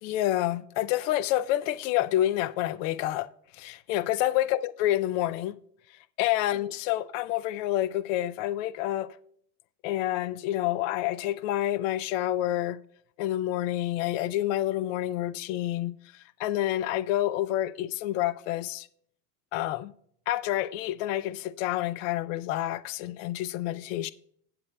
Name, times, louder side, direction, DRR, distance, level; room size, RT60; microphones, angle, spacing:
voice 1, 0.0-3.3 3.5-5.6 6.2-9.2 9.8-12.8 13.2-18.9 19.5-19.9 20.3-24.1, left 14 dB, 55° left, 0.5 m, -28 dB
16.5 x 7.6 x 2.2 m
supercardioid pair, 170°, 46 cm